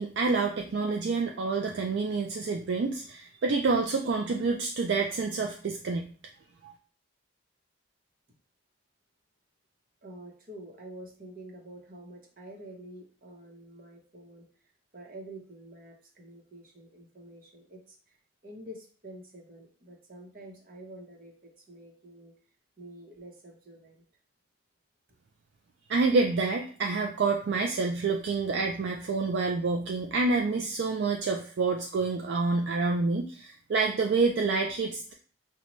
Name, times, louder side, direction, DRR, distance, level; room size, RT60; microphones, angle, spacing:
voice 1, 0.0-6.1 6.6-6.7 25.9-35.1, right 4 dB, 65° right, 3 dB, 0.3 m, -28 dB
voice 2, 10.0-14.5 14.9-18.2 18.4-22.3 22.8-24.0, right 1 dB, 45° right, 1 dB, 0.8 m, -48 dB
5.1 x 2.2 x 3.0 m, 0.42 s
head